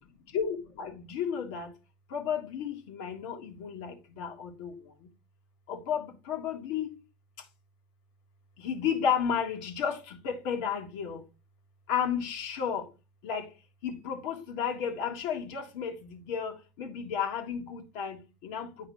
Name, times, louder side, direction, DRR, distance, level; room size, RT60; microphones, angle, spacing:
voice 1, 0.3-1.7 2.1-4.7 5.7-6.9 8.6-11.2 11.9-12.8 13.2-13.5 13.8-16.5 16.8-18.2 18.4-18.7, left 7 dB, 70° left, 1.6 m, -32 dB
9.0 x 4.9 x 3.0 m
hypercardioid pair, 80°, 4 cm